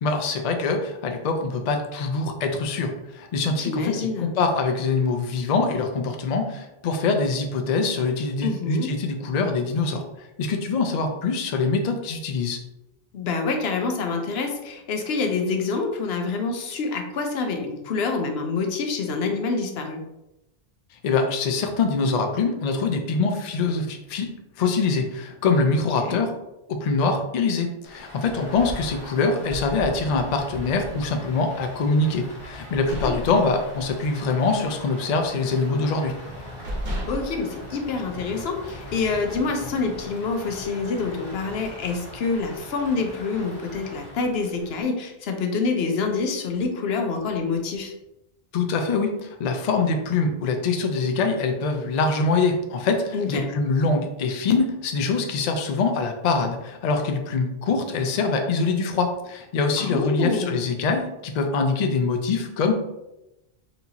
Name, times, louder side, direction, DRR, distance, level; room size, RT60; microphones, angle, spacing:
voice 1, 0.0-12.6 21.0-24.3 24.6-26.3 26.7-36.1 48.5-62.7, left 4 dB, 55° left, 5 dB, 0.5 m, -24 dB
voice 2, 3.6-4.3 8.4-8.9 13.1-20.0 26.0-26.2 33.0-33.4 37.1-47.9 53.1-53.5 59.8-60.6, left 4 dB, 80° left, 4 dB, 0.8 m, -27 dB
Rain, 27.8-44.8, equal, 25° left, 1.2 m, -40 dB
sound 1, 32.8-34.1 34.4-34.7 35.0-35.8 36.3-36.4 36.6-38.5, equal, 65° right, 1.0 m, -34 dB
4.3 x 2.7 x 2.7 m, 0.92 s
omnidirectional pair, 1.1 m